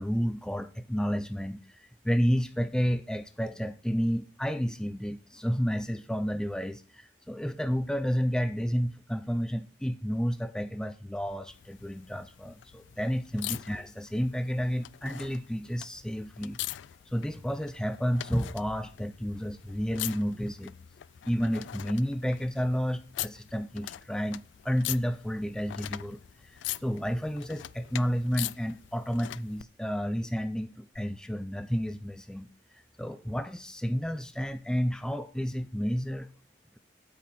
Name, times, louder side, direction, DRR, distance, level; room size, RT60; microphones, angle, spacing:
voice 1, 0.0-16.6 17.1-20.8 21.3-36.3, equal, 5° left, 0.4 m, -31 dB
sound 1, 11.5-29.6 30.9-31.0, left 14 dB, 85° left, 0.3 m, -42 dB
8.5 x 7.9 x 4.1 m
head